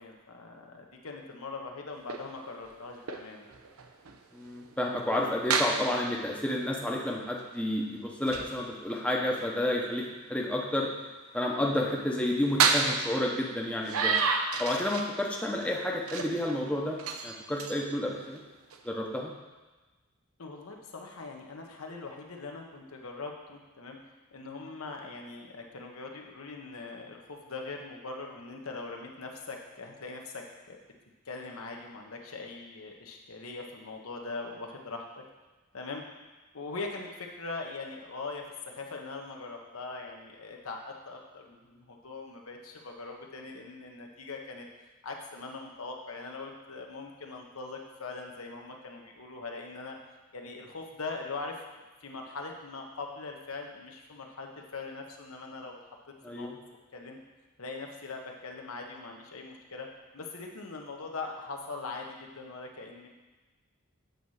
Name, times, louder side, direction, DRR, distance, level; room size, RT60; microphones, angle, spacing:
voice 1, 0.0-3.5 20.4-24.0 24.3-30.8 31.2-35.2 35.7-36.0 36.5-44.7 45.0-50.0 50.3-51.6 52.0-55.8 56.3-56.5 56.9-57.2 57.6-59.9 60.1-63.1, left 3 dB, 75° left, 2 dB, 1.0 m, -41 dB
sound 1, 2.0-5.2 5.5-6.5 6.8-6.9 7.4-7.6 8.3-8.6 8.9-9.0 9.4-9.5 10.3-10.4 11.4-11.5 12.4-15.2 15.5-15.7 16.1-16.7 17.0-18.9, right 5 dB, 85° right, 0.7 m, -31 dB
voice 2, 4.3-10.9 11.3-14.2 14.6-17.0 17.2-18.4 18.8-19.3 56.2-56.5, left 1 dB, 5° left, -2 dB, 0.8 m, -30 dB
8.1 x 4.2 x 6.4 m, 1.2 s
head